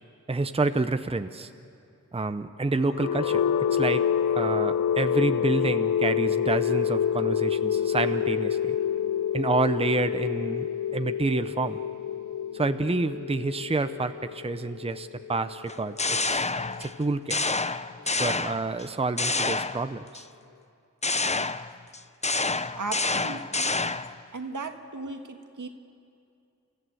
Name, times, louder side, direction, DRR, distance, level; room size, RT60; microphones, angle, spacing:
voice 1, 0.3-1.5 2.1-3.4 3.7-4.0 4.3-8.8 9.3-11.8 12.5-16.5 16.8-17.4 18.1-20.2, right 3 dB, 20° right, 10 dB, 0.7 m, -28 dB
sound 1, 2.8-16.7, left 8 dB, 70° left, 0.5 m, -27 dB
sound 2, 15.7-17.0 17.3-18.8 19.2-20.2 21.0-24.2, left 3 dB, 20° left, 0.6 m, -28 dB
voice 2, 22.7-23.7 24.3-25.7, right 3 dB, 75° right, 5 dB, 1.6 m, -36 dB
29.5 x 14.5 x 7.9 m, 2.5 s
wide cardioid pair, 55°, 31 cm